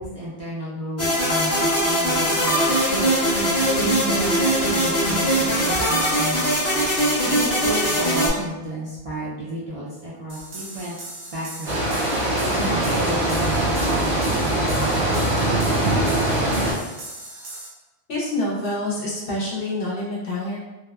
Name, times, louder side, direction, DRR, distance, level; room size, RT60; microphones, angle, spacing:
voice 1, 0.0-3.3 3.8-6.6 7.2-11.0 11.3-11.8 12.3-15.3, right 1 dB, 50° right, -8 dB, 0.4 m, -32 dB
sound 1, 1.0-8.3, equal, 20° left, 0.4 m, -21 dB
sound 2, 10.3-17.7, right 2 dB, 65° right, 0.8 m, -38 dB
sound 3, 11.7-16.7, right 1 dB, 85° right, 1.3 m, -22 dB
voice 2, 18.1-20.6, left 1 dB, 60° left, -5 dB, 0.9 m, -27 dB
2.8 x 2.2 x 2.2 m, 1.1 s
omnidirectional pair, 1.1 m